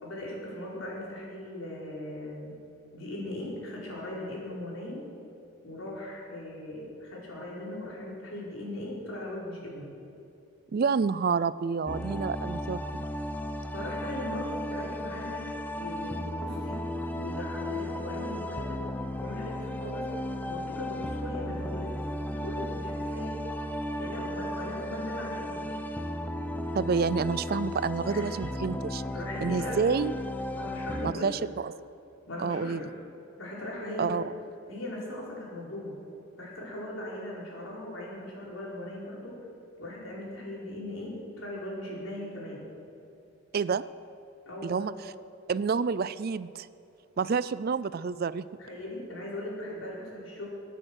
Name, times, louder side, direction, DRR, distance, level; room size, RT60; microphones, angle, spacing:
voice 1, 0.0-2.6 2.9-5.0 5.6-9.9 13.7-16.9 17.1-18.9 19.2-20.1 20.4-22.0 22.4-23.4 23.9-25.7 28.0-28.3 29.1-29.8 30.5-31.4 32.3-32.9 33.4-34.2 34.7-36.0 36.4-39.4 39.8-42.6 44.5-44.9 48.6-50.5, left 1 dB, 80° left, -4 dB, 4.6 m, -39 dB
voice 2, 10.7-13.0 26.7-29.0 29.4-30.1 31.0-31.7 32.4-32.8 34.0-34.2 43.5-43.8 44.6-44.9 45.5-46.7 47.2-48.5, right 5 dB, 50° right, 17 dB, 0.4 m, -28 dB
sound 1, 11.9-31.1, left 1 dB, 10° left, 0.7 m, -35 dB
22.0 x 9.0 x 6.4 m, 2.8 s
head